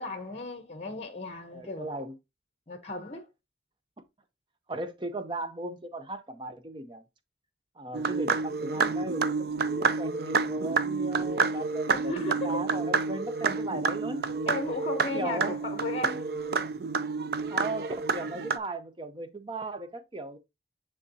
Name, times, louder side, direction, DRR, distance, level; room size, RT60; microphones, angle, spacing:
voice 1, 0.0-1.9 2.7-3.3 11.9-12.7 14.5-16.3, left 2 dB, 35° left, 0.8 m, -35 dB
voice 2, 1.5-2.1 4.7-7.0 7.8-9.5 9.7-12.2 12.4-14.2 14.7-14.8 15.1-15.7 17.2-20.4, right 2 dB, 25° right, 0.7 m, -37 dB
sound 1, 7.9-18.6, right 4 dB, 60° right, 0.5 m, -29 dB
9.6 x 3.6 x 2.7 m
head